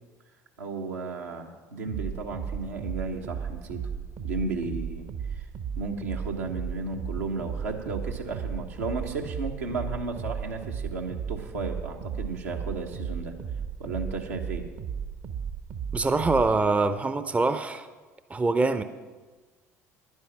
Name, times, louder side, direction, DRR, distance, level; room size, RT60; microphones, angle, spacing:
voice 1, 0.6-3.8 4.2-5.1 5.8-13.3 13.8-14.6, right 3 dB, 75° right, 1 dB, 1.2 m, -34 dB
sound 1, 1.9-16.6, right 7 dB, 50° right, 1.0 m, -35 dB
voice 2, 15.9-17.9 18.3-18.8, right 3 dB, 15° right, 11 dB, 0.6 m, -24 dB
10.5 x 9.6 x 5.8 m, 1.3 s
figure-of-eight pair, 60°, 9 cm